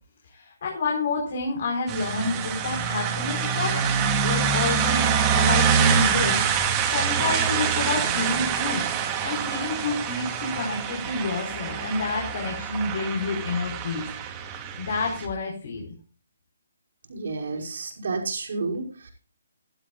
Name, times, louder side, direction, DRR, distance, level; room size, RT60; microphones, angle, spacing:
voice 1, 0.2-3.8 4.2-8.9 9.2-14.1 14.8-15.9, left 3 dB, 50° left, 0 dB, 4.6 m, -29 dB
sound 1, 1.9-15.3, right 7 dB, 20° right, 3.1 m, -25 dB
voice 2, 17.1-19.1, right 3 dB, 60° right, 1 dB, 5.3 m, -31 dB
16.0 x 12.5 x 2.4 m, 0.37 s
figure-of-eight pair, 140°, 0 cm